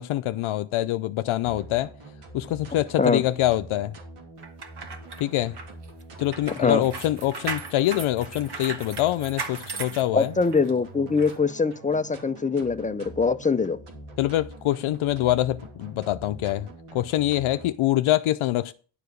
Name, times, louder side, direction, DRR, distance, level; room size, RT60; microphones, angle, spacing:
voice 1, 0.0-1.9 2.3-3.9 5.2-5.6 6.2-10.3 14.2-16.7 16.9-18.7, left 14 dB, 75° left, 0.6 m, -25 dB
sound 1, 1.4-17.7, right 2 dB, 90° right, 2.7 m, -45 dB
sound 2, 4.4-10.7 11.2-11.3, right 4 dB, 50° right, 1.4 m, -37 dB
voice 2, 6.5-6.8 10.1-13.8, left 4 dB, 20° left, 0.3 m, -23 dB
10.5 x 4.8 x 6.5 m
wide cardioid pair, 130°, 50 cm